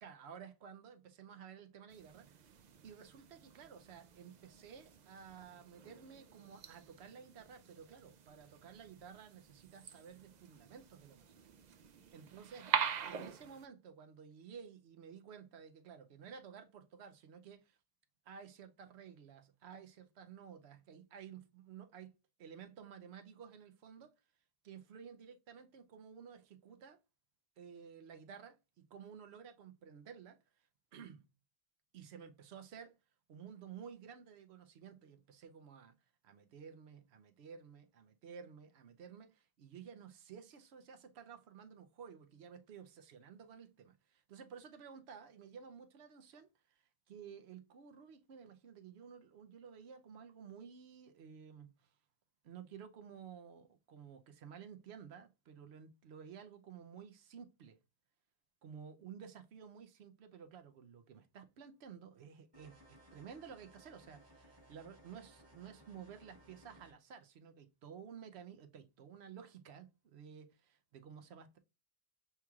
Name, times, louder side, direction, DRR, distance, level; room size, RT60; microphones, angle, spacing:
voice 1, 0.0-11.5 11.9-12.7 13.0-17.8 18.3-22.1 22.4-24.1 24.6-27.0 27.6-30.4 30.9-31.2 31.9-33.0 33.3-36.0 36.2-51.9 52.4-57.8 58.6-71.6, right 7 dB, 85° right, 0.9 m, -53 dB
sound 1, 1.9-13.7, right 7 dB, 55° right, 0.5 m, -44 dB
sound 2, 62.5-66.9, equal, 25° right, 1.3 m, -62 dB
6.8 x 3.0 x 2.3 m
omnidirectional pair, 1.1 m